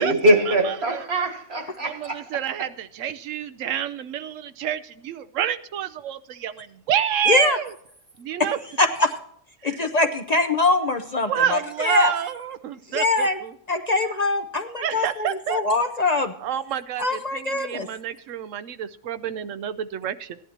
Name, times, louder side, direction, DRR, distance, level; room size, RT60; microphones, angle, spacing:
voice 1, 0.0-2.3, right 1 dB, 60° right, 1.7 m, -22 dB
voice 2, 1.8-7.7 8.2-8.6 9.6-9.8 11.3-13.5 14.8-15.6 16.4-20.4, right 9 dB, 85° right, 1.0 m, -28 dB
voice 3, 7.3-7.6 8.8-9.1 9.6-12.1 12.9-13.4 13.7-16.3 17.0-17.9, left 2 dB, 40° left, 0.6 m, -23 dB
16.5 x 11.0 x 2.9 m
omnidirectional pair, 1.3 m